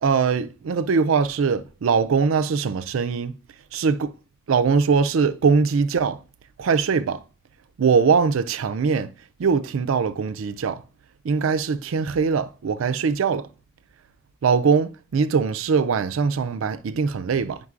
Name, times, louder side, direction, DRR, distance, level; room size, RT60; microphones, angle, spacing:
voice 1, 0.0-3.3 3.7-4.1 4.5-6.2 6.6-7.2 7.8-9.1 9.4-10.8 11.2-13.5 14.4-17.6, right 5 dB, 85° right, 0.4 m, -21 dB
9.4 x 5.2 x 2.4 m
head